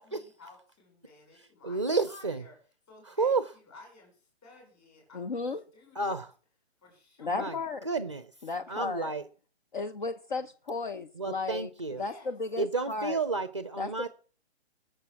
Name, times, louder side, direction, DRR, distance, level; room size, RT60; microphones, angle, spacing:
voice 1, 0.0-2.6 2.9-5.4 5.7-6.2 6.8-7.6 8.5-9.2 11.7-12.3, left 3 dB, 15° left, 5.3 m, -54 dB
voice 2, 1.4-2.4 3.1-3.4 6.0-6.3 7.3-7.6 7.8-8.3 8.7-9.2 11.1-12.0 12.6-14.1, right 4 dB, 30° right, 0.6 m, -31 dB
voice 3, 5.1-5.6 7.2-7.8 8.4-9.1 9.7-11.7 12.0-13.2 13.8-14.1, left 3 dB, 50° left, 1.0 m, -34 dB
19.5 x 6.9 x 7.4 m
hypercardioid pair, 180°, 32 cm